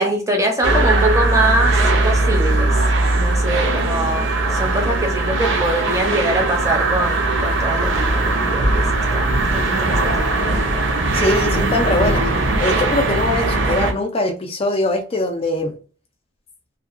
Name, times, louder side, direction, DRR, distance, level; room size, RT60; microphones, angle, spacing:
voice 1, 0.0-2.8 3.2-10.0, right 1 dB, 15° right, 0.6 m, -23 dB
sound 1, 0.6-13.9, right 2 dB, 60° right, 0.5 m, -19 dB
voice 2, 11.1-12.3 12.6-15.7, left 2 dB, 30° left, 0.3 m, -21 dB
2.7 x 2.2 x 2.4 m
head